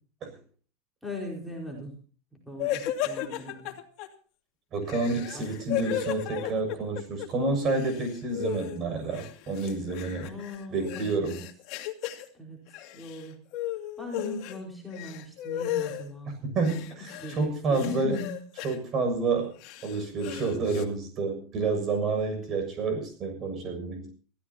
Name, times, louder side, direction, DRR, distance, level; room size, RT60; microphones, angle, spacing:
voice 1, 1.0-2.0 2.3-3.8 5.3-5.9 10.2-11.5 12.3-13.4 14.0-16.3 17.2-18.4, left 1 dB, ahead, -2 dB, 4.8 m, -39 dB
sound 1, 2.6-4.1 4.9-7.3 7.5-8.8 9.1-12.3 12.7-13.2 13.5-14.6 14.9-16.0 16.6-17.4 17.7-18.8 19.4-20.8, left 12 dB, 45° left, 2.4 m, -35 dB
voice 2, 4.7-10.3 10.7-11.4 16.4-18.2 18.6-19.5 19.8-24.1, right 3 dB, 30° right, 6 dB, 6.9 m, -29 dB
24.5 x 15.5 x 2.9 m, 0.41 s
supercardioid pair, 165°, 0 cm